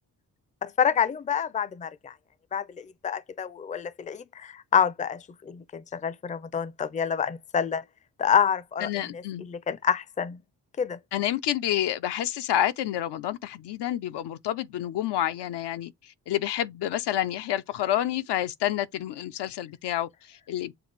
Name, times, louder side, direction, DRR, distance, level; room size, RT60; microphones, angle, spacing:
voice 1, 0.6-2.1 2.5-7.8 8.2-10.4 10.8-11.0, left 7 dB, 20° left, 0.4 m, -28 dB
voice 2, 8.8-9.5 11.1-20.7, left 12 dB, 80° left, 0.5 m, -29 dB
6.9 x 2.4 x 3.2 m
cardioid pair, 60°, 41 cm